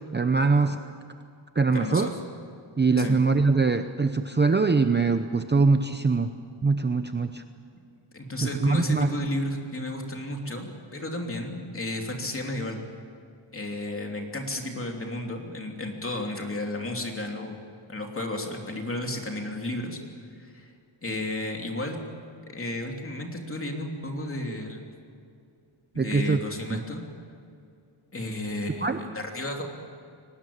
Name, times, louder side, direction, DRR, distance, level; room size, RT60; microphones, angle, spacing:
voice 1, 0.1-0.8 1.6-2.1 2.8-6.3 6.6-7.4 8.4-9.1 26.0-26.4 26.7-26.8 28.8-29.0, right 4 dB, 20° right, 8 dB, 0.8 m, -23 dB
voice 2, 1.7-2.1 3.0-3.2 8.1-12.8 13.5-17.6 17.9-20.0 20.4-20.7 21.0-22.0 22.5-24.9 25.9-27.1 28.1-29.6, left 1 dB, 25° left, 2 dB, 3.0 m, -33 dB
24.0 x 19.0 x 8.7 m, 2.4 s
wide cardioid pair, 130°, 49 cm